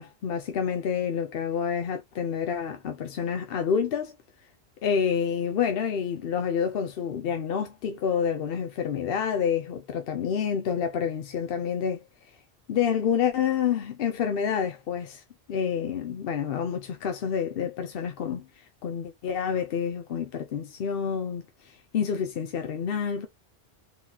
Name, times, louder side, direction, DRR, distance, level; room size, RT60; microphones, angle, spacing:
voice 1, 0.0-4.2 4.8-12.4 12.7-15.2 15.5-23.3, left 7 dB, 65° left, 0.8 m, -28 dB
4.2 x 3.8 x 2.8 m
omnidirectional pair, 1.1 m